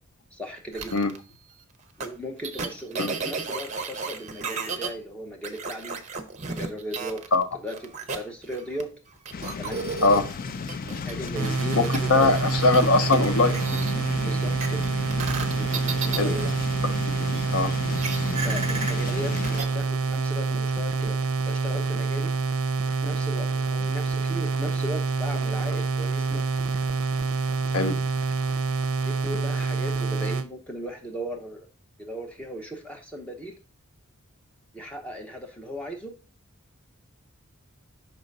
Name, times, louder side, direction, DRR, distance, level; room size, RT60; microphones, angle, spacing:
voice 1, 0.3-1.0 2.0-6.0 6.5-7.2 7.6-7.7 8.1-8.9 9.6-9.8 11.0-12.3 14.2-14.8 15.6-16.4 18.3-21.2 21.5-22.3 22.8-26.5 29.0-31.7 32.0-33.6 34.7-36.1, equal, 5° left, 1 dB, 1.0 m, -37 dB
sound 1, 0.7-1.2 2.0-2.1 2.4-4.9 5.4-7.4 7.7-8.8 9.3-13.9 14.6-17.4 18.0-19.7, right 4 dB, 35° right, 0.8 m, -33 dB
sound 2, 9.3-19.6, left 5 dB, 40° left, 0.4 m, -34 dB
sound 3, 11.4-30.5, right 4 dB, 70° right, 0.5 m, -27 dB
voice 2, 11.8-13.6 16.1-16.3 17.2-17.7 27.7-28.0, left 3 dB, 85° left, 10 dB, 0.7 m, -21 dB
5.6 x 3.9 x 5.3 m, 0.35 s
head